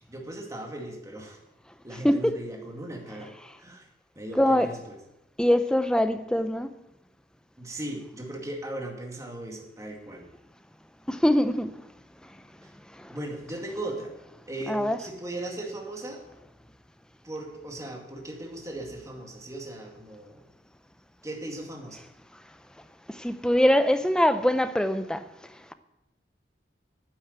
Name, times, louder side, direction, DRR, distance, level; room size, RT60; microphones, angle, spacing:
voice 1, 0.1-1.4 1.8-3.3 3.6-3.9 4.2-5.0 7.6-10.3 13.1-14.1 14.5-16.2 17.2-20.5 21.2-22.0, right 1 dB, 20° right, 2.2 m, -37 dB
voice 2, 4.4-4.7 5.4-6.7 11.1-11.7 13.0-13.1 14.7-15.0 23.2-25.2, equal, 5° left, 0.6 m, -23 dB
9.6 x 9.0 x 8.1 m
head